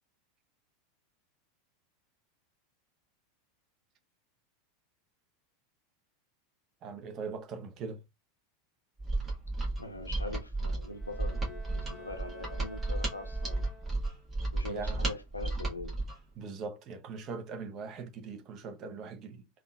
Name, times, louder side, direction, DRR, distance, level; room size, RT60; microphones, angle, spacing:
voice 1, 6.8-8.0 14.7-15.0 16.4-19.5, right 4 dB, 40° right, 0.6 m, -41 dB
Mechanisms, 9.0-16.2, right 2 dB, 20° right, 1.4 m, -33 dB
voice 2, 9.8-13.7 14.5-16.0, left 2 dB, 85° left, 0.5 m, -42 dB
Bowed string instrument, 10.9-14.3, equal, 20° left, 0.8 m, -52 dB
3.6 x 2.3 x 2.3 m
figure-of-eight pair, 85°, 0 cm